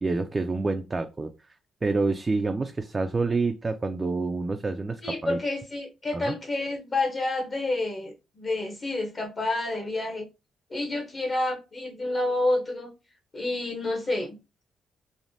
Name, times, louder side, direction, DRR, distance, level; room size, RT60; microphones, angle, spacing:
voice 1, 0.0-1.3 1.8-5.4 6.1-6.3, right 3 dB, 25° right, 0.3 m, -27 dB
voice 2, 5.0-10.3 10.7-12.9 13.3-14.4, left 2 dB, 35° left, 0.7 m, -29 dB
3.2 x 2.0 x 2.6 m
cardioid pair, 90°, 0 cm